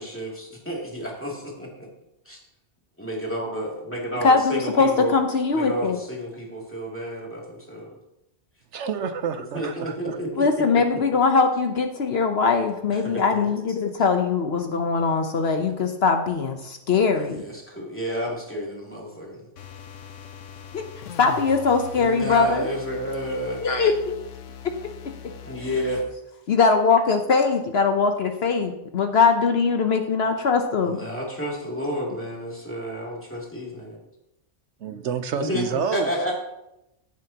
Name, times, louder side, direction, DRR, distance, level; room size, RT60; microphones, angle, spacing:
voice 1, 0.0-1.9 2.3-2.4 3.0-5.2 5.5-8.0 9.5-10.8 12.9-13.6 17.1-19.5 21.9-23.7 25.4-26.1 30.8-34.0 35.3-36.3, equal, 10° left, 2.5 m, -31 dB
voice 2, 4.2-6.0 10.4-17.4 20.7-20.8 21.2-22.7 23.6-24.1 26.5-31.0, left 4 dB, 60° left, 1.0 m, -21 dB
voice 3, 8.7-10.2 34.8-36.1, right 6 dB, 75° right, 1.0 m, -28 dB
sound 1, 19.6-26.1, left 7 dB, 90° left, 1.1 m, -41 dB
15.0 x 7.4 x 2.9 m
omnidirectional pair, 1.2 m